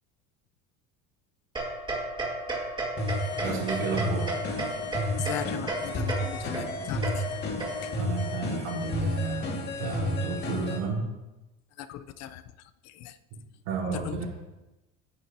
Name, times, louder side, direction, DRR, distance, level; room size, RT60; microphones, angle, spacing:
sound 1, 1.5-8.1, right 2 dB, 15° right, 2.1 m, -34 dB
sound 2, 3.0-10.8, left 1 dB, 35° left, 2.2 m, -32 dB
voice 1, 3.3-4.3 8.0-11.1 13.3-13.4 13.6-14.3, right 4 dB, 85° right, -1 dB, 4.7 m, -32 dB
voice 2, 5.2-7.3 7.8-7.9 11.8-12.4 12.8-13.2 13.9-14.2, left 11 dB, 55° left, 11 dB, 0.8 m, -38 dB
19.5 x 9.3 x 2.9 m, 1.0 s
cardioid pair, 135°, 31 cm